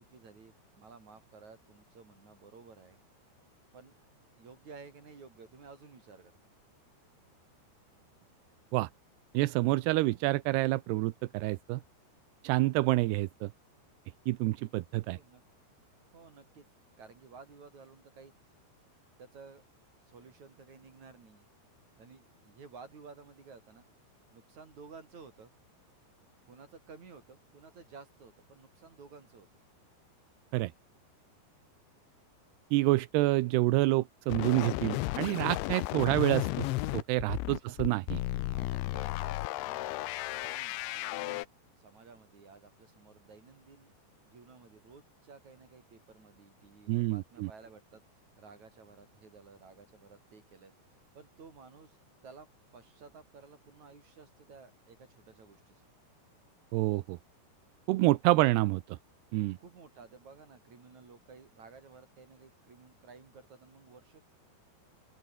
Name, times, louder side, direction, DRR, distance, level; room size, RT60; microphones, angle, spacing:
voice 1, 0.0-3.0 3.7-4.0 4.4-6.3 15.1-15.4 16.1-16.7 17.0-18.3 19.2-19.6 20.1-21.5 22.0-23.8 24.3-25.5 26.5-29.5 37.7-37.9 38.5-40.0 40.3-41.4 41.8-48.0 48.4-52.0 52.2-55.8 59.6-64.2, right 5 dB, 40° right, 5.4 m, -54 dB
voice 2, 9.3-11.8 12.4-13.5 14.3-15.2 30.5-30.7 32.7-36.7 36.9-38.2 46.9-47.5 56.7-57.2 57.9-59.0 59.3-59.6, right 19 dB, 75° right, 2.6 m, -28 dB
sound 1, 34.3-41.5, left 18 dB, 85° left, 3.3 m, -34 dB
open air
omnidirectional pair, 5.2 m